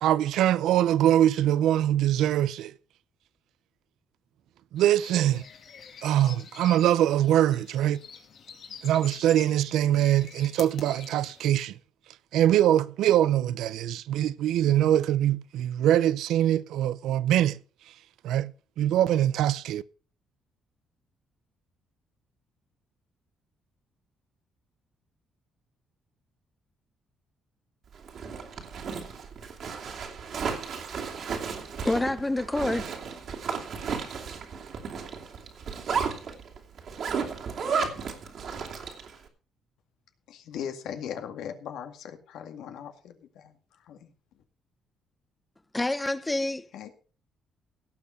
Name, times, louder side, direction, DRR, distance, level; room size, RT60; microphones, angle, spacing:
voice 1, 0.0-2.7 4.7-5.4 6.0-8.0 8.8-11.8 12.3-17.6 18.2-19.8, right 12 dB, 85° right, 0.5 m, -23 dB
sound 1, 4.8-11.5, left 7 dB, 60° left, 2.4 m, -47 dB
Zipper (clothing), 27.9-39.2, right 6 dB, 60° right, 2.7 m, -34 dB
voice 2, 31.8-32.9 45.7-46.7, left 2 dB, 15° left, 0.6 m, -27 dB
voice 3, 40.3-43.5 43.8-44.1 46.7-46.9, left 9 dB, 80° left, 2.0 m, -39 dB
17.0 x 6.4 x 5.5 m
cardioid pair, 110°, 0 cm